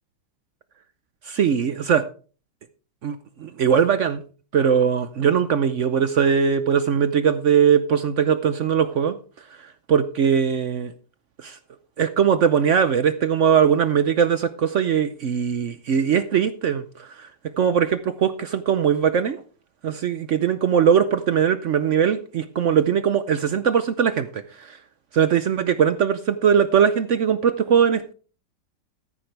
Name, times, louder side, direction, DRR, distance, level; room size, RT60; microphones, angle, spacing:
voice 1, 1.3-2.0 3.0-4.2 4.5-9.2 9.9-10.9 11.4-11.6 12.0-17.3 17.6-19.4 19.8-24.8 25.1-28.1, right 7 dB, 70° right, 12 dB, 0.7 m, -20 dB
13.0 x 10.5 x 3.3 m, 0.38 s
omnidirectional pair, 2.1 m